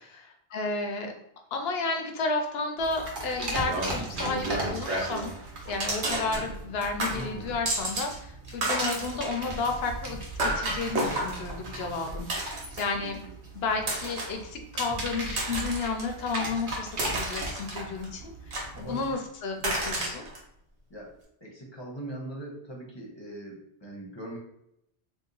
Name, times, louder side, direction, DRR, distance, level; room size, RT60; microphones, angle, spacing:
voice 1, 0.2-1.1 1.5-5.3 5.7-13.2 13.5-20.2, left 3 dB, 70° left, 4 dB, 0.8 m, -32 dB
sound 1, 2.8-19.1, right 2 dB, 50° right, 0.9 m, -38 dB
sound 2, 3.6-5.3 5.8-6.7 7.0-8.2 8.4-13.0 13.8-14.4 15.0-16.0 16.5-18.1 18.5-19.2 19.6-20.4, right 1 dB, 75° right, 1.2 m, -32 dB
voice 2, 7.1-7.5 12.9-13.1 18.7-19.1 20.9-21.1 21.4-24.4, right 1 dB, 25° left, -3 dB, 0.7 m, -41 dB
2.9 x 2.1 x 3.8 m, 0.77 s
omnidirectional pair, 1.1 m